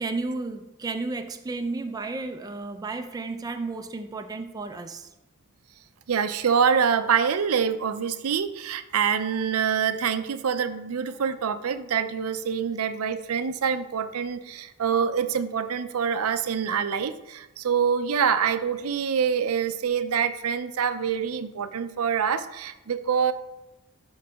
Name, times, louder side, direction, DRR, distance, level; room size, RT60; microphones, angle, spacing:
voice 1, 0.0-5.1, right 3 dB, 15° right, 6 dB, 0.4 m, -32 dB
voice 2, 6.1-23.3, right 7 dB, 90° right, 10 dB, 0.5 m, -25 dB
11.5 x 3.9 x 3.4 m, 0.98 s
head